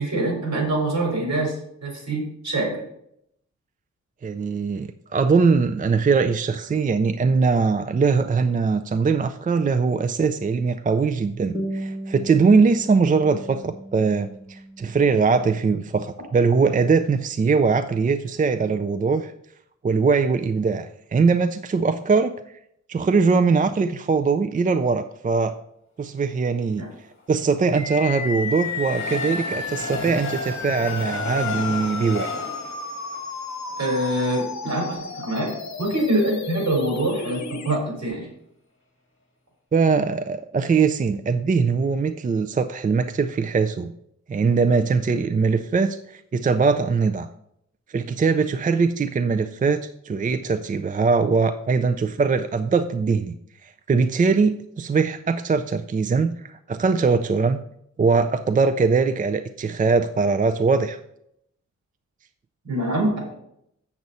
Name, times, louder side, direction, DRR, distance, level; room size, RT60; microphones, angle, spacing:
voice 1, 0.0-1.5 1.8-2.8 26.8-26.9 33.8-35.5 35.8-38.3 62.6-63.3, right 1 dB, 65° right, -1 dB, 3.9 m, -24 dB
voice 2, 4.2-19.3 19.8-22.3 22.9-25.5 26.0-26.8 27.3-32.3 39.7-43.9 44.3-47.3 47.9-53.3 53.6-57.6 58.0-61.0, right 4 dB, 30° right, 9 dB, 0.3 m, -21 dB
sound 1, 11.5-16.5, right 1 dB, ahead, 1.6 m, -36 dB
Train, 27.2-34.5 35.0-35.1 35.3-35.4, left 2 dB, 45° left, 1.9 m, -34 dB
sound 2, 27.8-37.8, left 5 dB, 65° left, 0.9 m, -33 dB
7.8 x 7.2 x 4.1 m, 0.74 s
wide cardioid pair, 135°, 29 cm